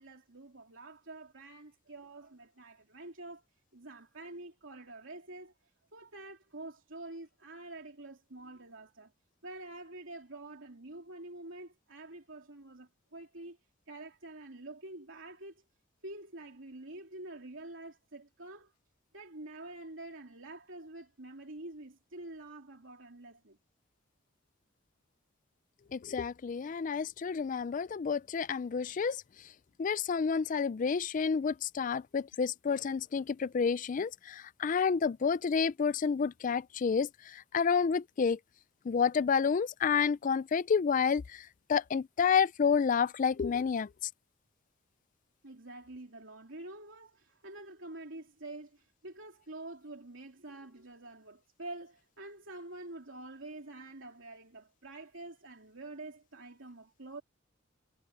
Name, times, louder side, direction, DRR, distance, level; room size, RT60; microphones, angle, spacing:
voice 1, 0.0-3.4 3.7-5.5 5.9-9.1 9.4-13.6 13.9-15.6 16.0-18.7 19.1-23.6 45.4-57.2, right 2 dB, 75° right, 3.0 m, -47 dB
voice 2, 25.9-29.2 29.8-38.4 38.9-41.4 41.7-43.9, left 6 dB, 40° left, 0.3 m, -29 dB
head